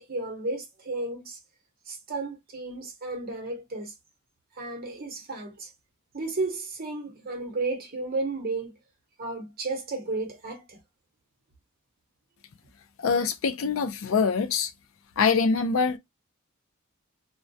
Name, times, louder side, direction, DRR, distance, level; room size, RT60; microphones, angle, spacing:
voice 1, 0.0-1.4 1.9-3.9 4.5-5.7 6.1-8.7 9.2-10.8, right 3 dB, 45° right, 0.8 m, -33 dB
voice 2, 13.0-14.7 15.2-16.0, left 5 dB, 65° left, 0.4 m, -24 dB
2.2 x 2.1 x 2.6 m
head